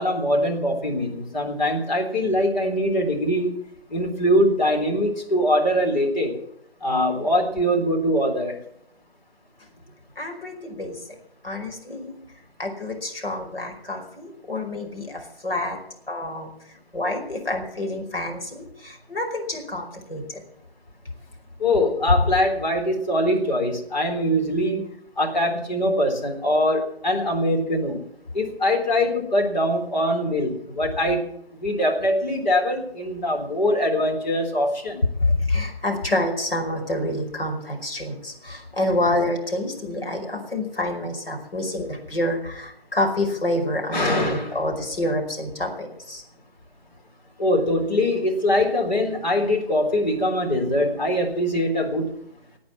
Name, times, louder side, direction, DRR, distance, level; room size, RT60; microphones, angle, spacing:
voice 1, 0.0-3.6 3.9-6.4 6.8-8.6 21.6-24.9 25.2-28.0 28.3-35.0 43.9-44.6 47.4-52.1, left 1 dB, 45° left, 1 dB, 3.8 m, -22 dB
voice 2, 10.2-11.0 11.4-12.2 12.6-15.8 16.1-16.5 16.9-20.2 35.2-46.2, left 1 dB, 65° left, 2 dB, 5.3 m, -27 dB
18.5 x 8.7 x 7.3 m, 0.71 s
figure-of-eight pair, 160°, 31 cm